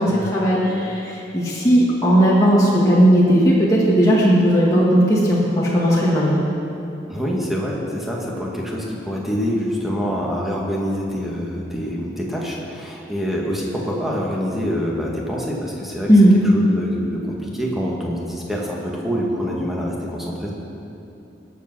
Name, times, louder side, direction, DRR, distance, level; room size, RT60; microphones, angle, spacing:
voice 1, 0.0-6.4 16.1-16.3, equal, 20° left, -7 dB, 2.0 m, -16 dB
voice 2, 7.1-16.1 16.4-20.5, equal, ahead, -3 dB, 2.0 m, -26 dB
19.5 x 7.8 x 6.3 m, 2.8 s
head